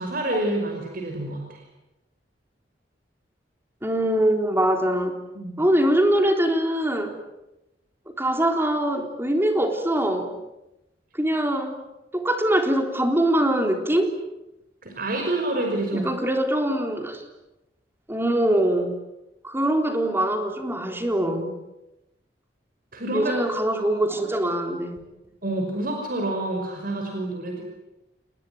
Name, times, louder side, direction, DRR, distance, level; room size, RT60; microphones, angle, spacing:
voice 1, 0.0-1.6 5.3-5.6 14.8-16.1 22.9-23.3 23.8-23.9 24.3-24.5 25.4-27.6, right 1 dB, 55° right, 2 dB, 5.6 m, -28 dB
voice 2, 3.8-5.2 5.6-7.1 8.2-10.3 11.1-11.8 12.1-14.1 15.9-17.3 18.1-18.9 19.4-21.5 23.1-25.0, right 1 dB, 15° right, 5 dB, 3.8 m, -23 dB
29.5 x 20.5 x 9.5 m, 0.94 s
head